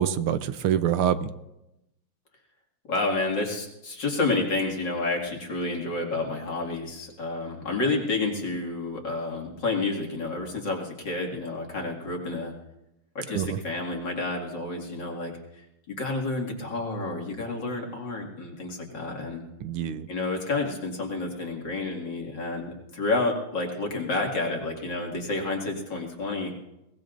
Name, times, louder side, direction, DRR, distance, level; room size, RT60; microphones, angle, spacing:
voice 1, 0.0-1.3 13.3-13.6 19.6-20.1, right 9 dB, 80° right, 11 dB, 1.6 m, -25 dB
voice 2, 2.9-12.5 13.1-19.4 20.1-26.5, left 3 dB, 55° left, 0 dB, 2.9 m, -30 dB
22.0 x 19.5 x 2.6 m, 0.91 s
omnidirectional pair, 2.4 m